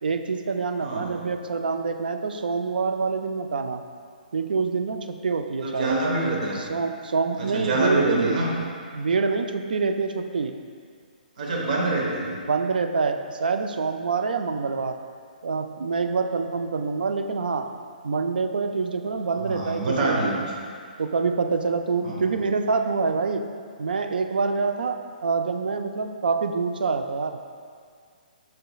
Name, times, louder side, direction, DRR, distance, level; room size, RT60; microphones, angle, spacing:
voice 1, 0.0-3.8 4.3-5.9 6.5-8.4 8.9-10.6 12.5-15.0 15.4-17.7 18.0-20.4 21.0-23.5 23.8-25.0 25.2-27.4, right 4 dB, 75° right, 6 dB, 0.4 m, -26 dB
voice 2, 0.8-1.3 5.6-6.6 7.4-8.5 11.4-12.4 19.5-20.5 22.0-22.2, right 2 dB, 60° right, -2 dB, 1.2 m, -25 dB
7.8 x 5.7 x 2.3 m, 2.1 s
hypercardioid pair, 135°, 5 cm